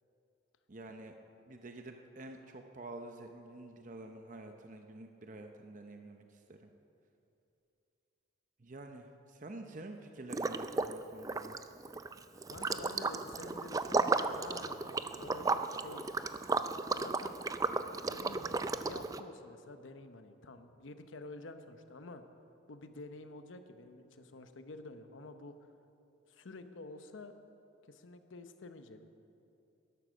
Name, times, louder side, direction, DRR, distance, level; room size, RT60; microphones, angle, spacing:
voice 1, 0.7-1.1 1.4-6.7 8.6-11.5, right 2 dB, 40° right, 5 dB, 0.7 m, -48 dB
Liquid, 10.3-11.0 11.2-19.2, right 3 dB, 20° right, 0.3 m, -34 dB
voice 2, 12.5-16.1 16.9-17.4 18.0-22.2 22.7-25.6 26.3-27.3 27.9-29.1, left 2 dB, 90° left, 8 dB, 0.8 m, -49 dB
12.0 x 11.5 x 6.3 m, 2.7 s
head